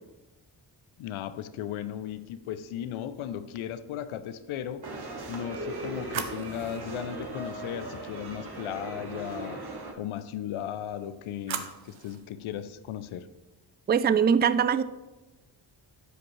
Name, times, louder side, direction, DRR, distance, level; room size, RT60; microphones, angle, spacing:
voice 1, 1.0-4.8 5.3-9.6 10.0-13.3, left 10 dB, 80° left, 0.6 m, -36 dB
sound 1, 4.8-9.9, right 2 dB, 50° right, 1.5 m, -38 dB
sound 2, 5.3-8.4 10.8-12.3, right 8 dB, 75° right, 0.8 m, -41 dB
voice 2, 13.9-14.8, right 7 dB, 25° right, 0.4 m, -22 dB
12.5 x 5.0 x 3.2 m
supercardioid pair, 40°, 48 cm